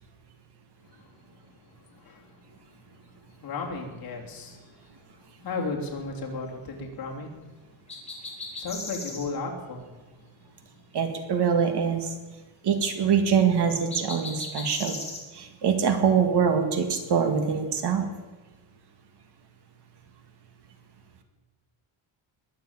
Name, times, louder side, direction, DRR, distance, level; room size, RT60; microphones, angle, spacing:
voice 1, 0.9-1.4 1.7-2.9 3.3-5.0 5.4-7.3 8.6-9.9, left 3 dB, 50° left, 0 dB, 3.2 m, -35 dB
sound 1, 7.9-9.3 13.9-15.2, left 3 dB, 15° left, 3.2 m, -37 dB
voice 2, 10.9-12.1 12.6-15.0 15.3-18.1, right 7 dB, 55° right, 7 dB, 2.2 m, -24 dB
21.5 x 7.4 x 8.9 m, 1.2 s
cardioid pair, 155°, 46 cm